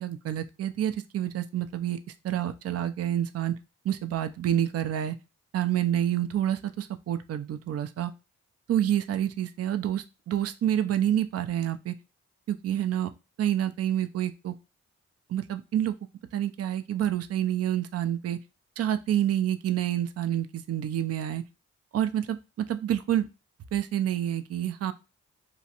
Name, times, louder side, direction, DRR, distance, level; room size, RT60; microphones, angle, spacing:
voice 1, 0.0-2.0 2.2-3.5 3.8-5.2 5.5-8.1 8.7-11.9 12.5-13.1 13.4-14.5 15.3-15.9 16.3-18.4 18.8-21.4 21.9-22.4 22.7-23.3 23.7-24.9, right 11 dB, 50° right, 9 dB, 0.5 m, -28 dB
3.0 x 2.5 x 2.8 m, 0.29 s
supercardioid pair, 40°, 32 cm